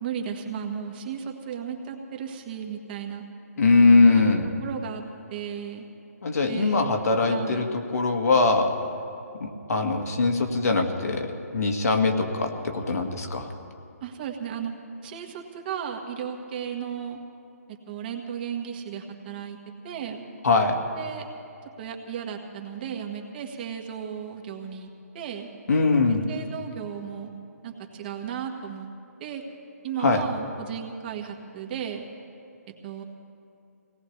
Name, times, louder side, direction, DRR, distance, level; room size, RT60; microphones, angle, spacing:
voice 1, 0.0-3.2 4.1-4.2 4.6-5.0 5.3-5.9 6.5-6.9 7.3-7.7 14.0-14.7 15.0-17.2 17.7-19.6 19.8-20.2 20.9-21.2 21.8-25.5 26.3-27.3 27.6-28.9 29.2-29.4 29.8-32.0 32.8-33.0, right 8 dB, 35° right, 3 dB, 1.5 m, -35 dB
voice 2, 3.6-4.5 6.2-8.7 9.4-13.5 20.4-20.8 25.7-26.3 30.0-30.2, left 3 dB, 70° left, 4 dB, 1.7 m, -21 dB
24.0 x 18.0 x 3.3 m, 2.7 s
hypercardioid pair, 150°, 9 cm